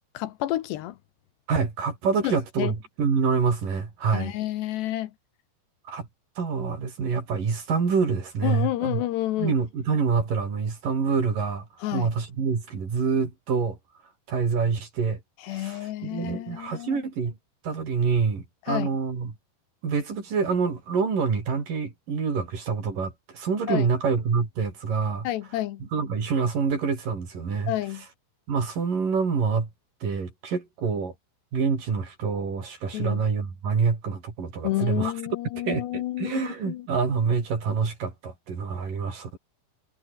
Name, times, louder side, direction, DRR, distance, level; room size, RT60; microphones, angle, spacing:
voice 1, 0.1-1.0 2.2-2.7 4.1-5.1 8.4-9.6 11.8-12.1 15.4-17.0 18.7-18.9 23.7-23.9 25.2-25.8 27.7-28.0 32.9-33.2 34.6-36.9, left 14 dB, 75° left, 3.1 m, -30 dB
voice 2, 1.5-4.3 5.9-6.1 6.4-9.0 9.4-13.8 14.3-15.2 15.5-17.3 17.6-19.3 19.8-25.3 25.8-27.7 28.5-29.7 30.0-31.1 31.5-35.1 35.5-39.4, right 5 dB, 50° right, 6.0 m, -26 dB
omnidirectional pair, 5.2 m